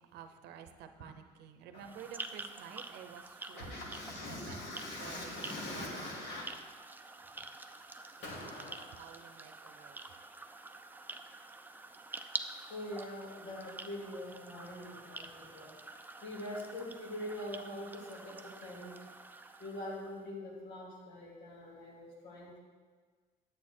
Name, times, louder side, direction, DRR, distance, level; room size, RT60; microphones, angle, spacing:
voice 1, 0.0-3.8 4.3-4.6 5.0-5.4 5.7-6.4 8.2-10.0, right 8 dB, 80° right, 8 dB, 0.7 m, -52 dB
sound 1, 1.8-20.2, right 3 dB, 10° right, 0.5 m, -48 dB
voice 2, 3.5-6.5 7.3-7.4 8.2-9.0 12.7-15.8 16.2-19.0 19.6-22.6, left 1 dB, 80° left, -4 dB, 2.7 m, -43 dB
8.6 x 7.7 x 4.4 m, 1.5 s
cardioid pair, 110°, 17 cm